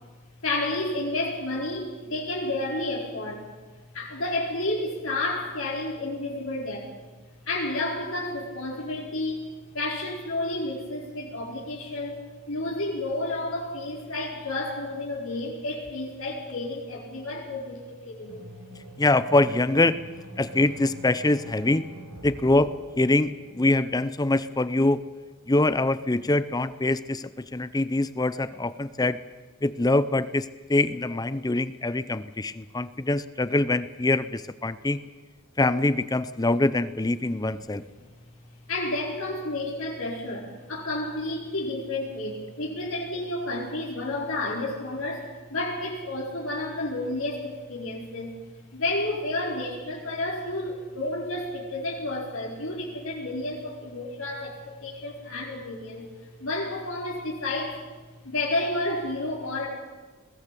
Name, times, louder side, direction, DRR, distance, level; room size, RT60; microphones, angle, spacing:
voice 1, 0.4-3.5 3.9-6.9 7.5-12.2 12.5-18.4 37.7-38.1 38.7-48.3 48.7-56.1 56.4-57.8 58.2-59.7, left 2 dB, 75° left, -3 dB, 4.5 m, -31 dB
sound 1, 18.2-23.8, right 1 dB, 90° right, 3.9 m, -45 dB
voice 2, 19.0-20.0 20.4-21.8 22.2-25.0 25.5-29.2 29.6-35.0 35.6-37.8, left 2 dB, 20° left, 15 dB, 0.6 m, -24 dB
21.0 x 16.5 x 8.4 m, 1.3 s
head